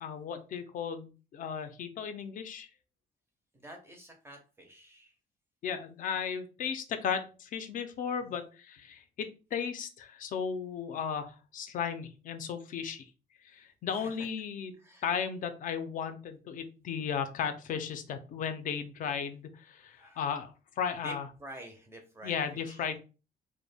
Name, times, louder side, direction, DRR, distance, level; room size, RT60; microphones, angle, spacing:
voice 1, 0.0-2.7 5.6-13.1 13.4-14.7 15.0-21.3 22.2-23.0, left 7 dB, 50° left, 8 dB, 0.4 m, -35 dB
voice 2, 3.5-5.1 8.3-8.4 13.9-14.1 14.8-15.0 20.0-20.2 21.0-23.0, right 1 dB, 15° right, 3 dB, 0.5 m, -48 dB
2.1 x 2.1 x 3.2 m, 0.33 s
cardioid pair, 155°, 17 cm